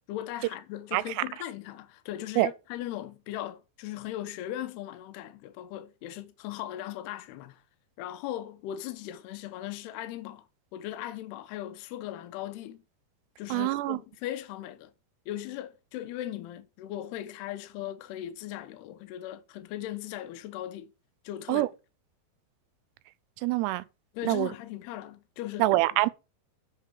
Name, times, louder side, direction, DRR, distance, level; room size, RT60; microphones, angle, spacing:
voice 1, 0.1-7.6 8.0-10.5 10.7-12.8 13.4-14.9 15.3-20.9 21.2-21.7 24.1-26.0, left 13 dB, 80° left, 2.9 m, -38 dB
voice 2, 13.5-14.0 21.5-21.7 23.4-23.8 24.3-24.5 25.6-26.1, right 17 dB, 85° right, 2.8 m, -25 dB
7.9 x 5.8 x 7.1 m
omnidirectional pair, 4.7 m